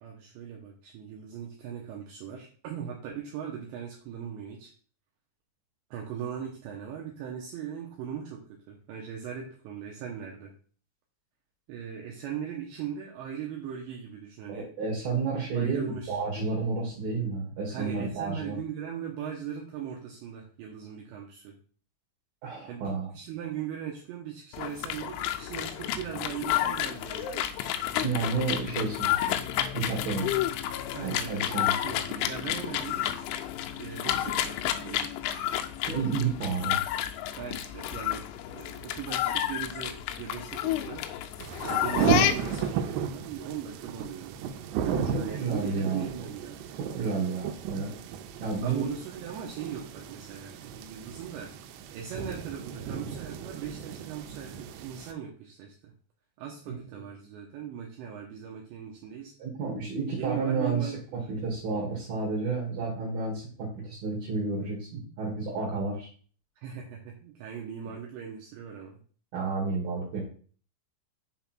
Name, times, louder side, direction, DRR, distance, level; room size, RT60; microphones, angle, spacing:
voice 1, 0.0-4.7 5.9-10.5 11.7-14.7 15.5-16.2 17.7-21.6 22.7-27.6 30.9-33.2 33.8-35.1 37.4-38.3 38.5-41.1 41.6-44.4 44.8-46.8 48.6-51.5 51.9-55.9 56.4-59.3 60.2-61.3 66.6-69.0, right 8 dB, 75° right, -1 dB, 2.9 m, -39 dB
voice 2, 14.5-18.6 22.4-23.1 28.0-29.2 29.7-30.4 31.0-31.7 35.9-36.8 44.9-46.1 46.8-47.9 48.4-48.8 56.7-56.8 59.4-60.9 61.3-66.1 69.3-70.2, right 4 dB, 60° right, -4 dB, 3.0 m, -31 dB
sound 1, 24.5-42.7, left 12 dB, 80° left, 2.9 m, -31 dB
sound 2, 41.4-55.1, right 8 dB, 90° right, 3.4 m, -34 dB
7.1 x 3.6 x 5.9 m, 0.43 s
omnidirectional pair, 5.8 m